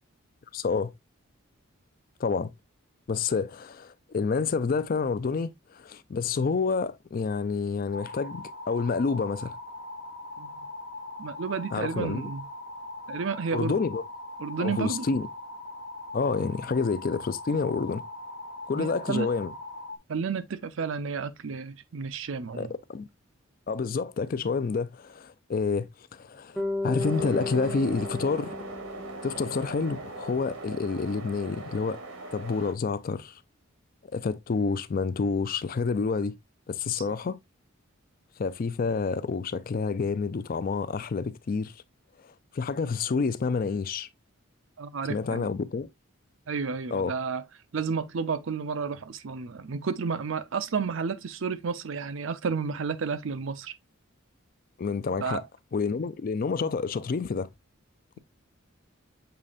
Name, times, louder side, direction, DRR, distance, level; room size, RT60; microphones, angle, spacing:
voice 1, 0.5-0.9 2.2-2.5 3.1-9.6 11.7-12.3 13.5-14.0 14.6-15.3 16.1-18.0 18.7-19.5 22.5-23.1 23.7-28.6 29.2-32.0 32.3-33.4 34.1-36.4 36.7-37.4 38.4-41.7 42.2-44.1 45.1-45.9 46.9-47.2 54.8-55.4 55.7-57.5, left 4 dB, 40° left, 0.3 m, -29 dB
sound 1, 7.9-20.0, left 2 dB, 65° left, 0.7 m, -41 dB
voice 2, 11.2-12.4 13.1-13.7 14.4-15.1 18.8-19.3 20.1-22.7 44.8-45.5 46.5-47.4 47.7-53.7 55.2-55.4, right 5 dB, 65° right, 0.5 m, -31 dB
Bass guitar, 26.6-30.7, left 2 dB, ahead, 0.6 m, -35 dB
sound 2, 27.0-32.7, right 3 dB, 85° right, 1.3 m, -40 dB
6.8 x 3.2 x 2.4 m
head